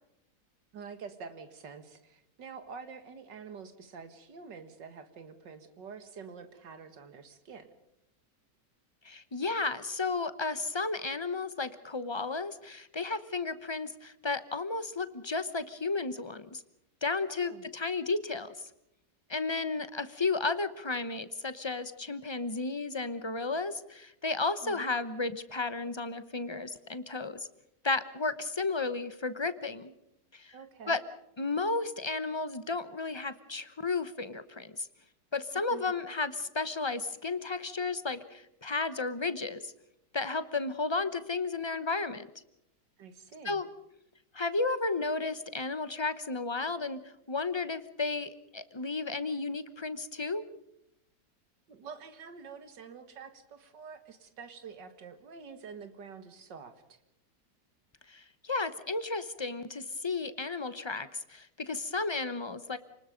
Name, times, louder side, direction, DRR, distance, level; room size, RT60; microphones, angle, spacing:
voice 1, 0.7-7.7 17.3-17.7 24.6-24.9 30.5-31.0 35.7-35.9 43.0-43.6 51.7-57.0, right 5 dB, 90° right, 9 dB, 2.4 m, -47 dB
voice 2, 9.0-16.6 17.0-18.5 19.3-27.5 27.8-29.9 30.3-30.5 30.9-31.0 31.4-34.9 35.3-39.7 40.1-42.3 43.4-43.7 44.3-50.4 58.1-62.8, left 3 dB, 25° left, 13 dB, 0.6 m, -33 dB
28.5 x 20.0 x 5.2 m, 0.84 s
omnidirectional pair, 1.8 m